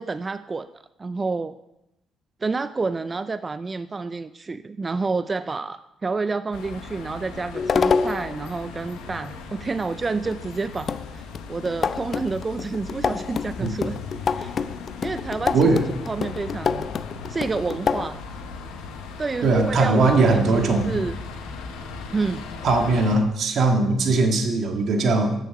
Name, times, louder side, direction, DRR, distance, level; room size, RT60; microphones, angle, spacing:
voice 1, 0.0-1.6 2.4-14.0 14.4-14.5 15.0-16.9 17.3-18.2 19.2-21.2 22.1-22.4, right 4 dB, 35° right, 13 dB, 0.4 m, -29 dB
sound 1, 6.5-23.2, left 4 dB, 90° left, 1.2 m, -38 dB
sound 2, 7.5-8.4 10.3-10.4 10.9-18.1, left 5 dB, 50° left, 0.4 m, -27 dB
voice 2, 19.4-20.9 22.6-25.3, right 3 dB, 65° right, 4 dB, 1.7 m, -20 dB
8.4 x 7.3 x 6.8 m, 0.89 s
supercardioid pair, 60°, 0 cm